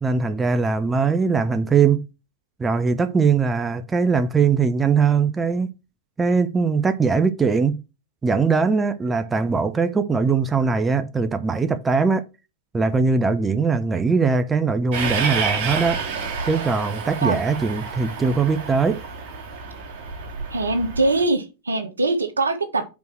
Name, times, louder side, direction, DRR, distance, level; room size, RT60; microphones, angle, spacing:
voice 1, 0.0-2.0 2.6-5.7 6.2-7.8 8.2-12.2 12.7-16.0 16.5-19.0, right 5 dB, 15° right, 0.6 m, -21 dB
Train, 14.9-21.2, right 5 dB, 50° right, 2.0 m, -29 dB
voice 2, 20.5-22.9, right 2 dB, 75° right, 1.2 m, -22 dB
5.2 x 4.6 x 6.2 m
figure-of-eight pair, 90°, 0 cm